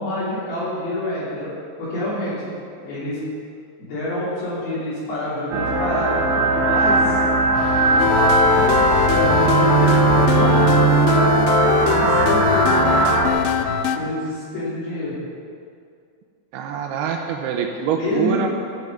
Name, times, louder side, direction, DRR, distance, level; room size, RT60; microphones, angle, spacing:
voice 1, 0.0-1.5 1.8-2.5 2.8-3.2 3.8-6.2 6.5-7.2 7.9-11.3 11.6-13.3 13.9-15.2 17.9-18.4, left 1 dB, 70° left, -10 dB, 4.8 m, -27 dB
sound 1, 5.5-13.3, right 3 dB, 60° right, 2.6 m, -18 dB
sound 2, 7.5-13.9, left 2 dB, 30° right, 3.7 m, -31 dB
sound 3, 8.0-14.0, left 9 dB, 90° left, 2.0 m, -22 dB
voice 2, 16.5-18.5, right 7 dB, 85° right, 2 dB, 2.7 m, -24 dB
15.5 x 6.8 x 5.3 m, 2.3 s
omnidirectional pair, 4.6 m